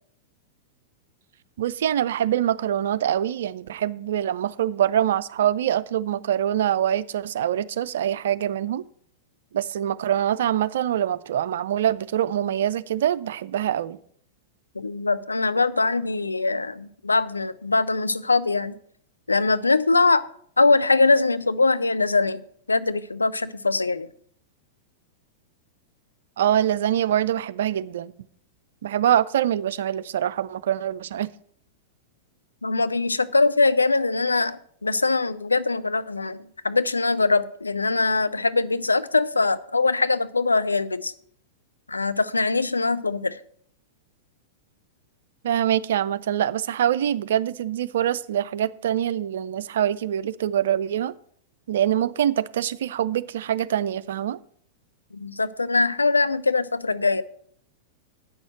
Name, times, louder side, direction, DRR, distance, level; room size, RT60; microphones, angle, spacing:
voice 1, 1.6-8.8 9.5-14.0 26.4-28.1 28.8-31.3 45.4-51.1 51.7-54.4, right 10 dB, 60° right, 0.4 m, -24 dB
voice 2, 14.8-18.8 19.3-20.2 20.6-22.4 22.7-24.1 32.6-41.1 41.9-43.4 55.1-57.2, left 3 dB, 80° left, 0.5 m, -22 dB
8.7 x 6.3 x 7.6 m
figure-of-eight pair, 95°, 0 cm